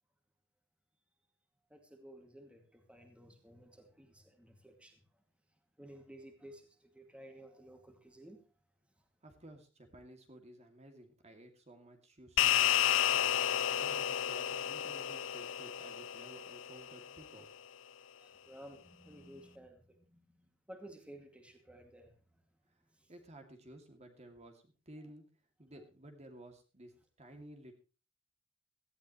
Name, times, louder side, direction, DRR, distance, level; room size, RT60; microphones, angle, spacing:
voice 1, 1.7-5.0 5.8-8.4 18.2-22.1 23.0-23.1, right 1 dB, 5° right, 2.3 m, -55 dB
voice 2, 9.2-17.5 23.1-25.2 25.6-27.7, right 1 dB, 35° right, 2.5 m, -55 dB
sound 1, 12.4-17.0, left 10 dB, 75° left, 0.6 m, -31 dB
18.0 x 14.5 x 3.1 m
head